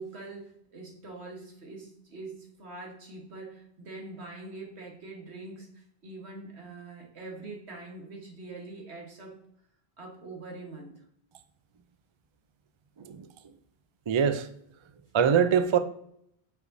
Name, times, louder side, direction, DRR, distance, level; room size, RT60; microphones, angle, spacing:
voice 1, 0.0-9.4 10.0-11.0, right 3 dB, 80° right, 1.6 m, -44 dB
voice 2, 14.1-14.5 15.1-15.8, right 7 dB, 45° right, 0.3 m, -23 dB
8.1 x 5.4 x 2.6 m
omnidirectional pair, 1.1 m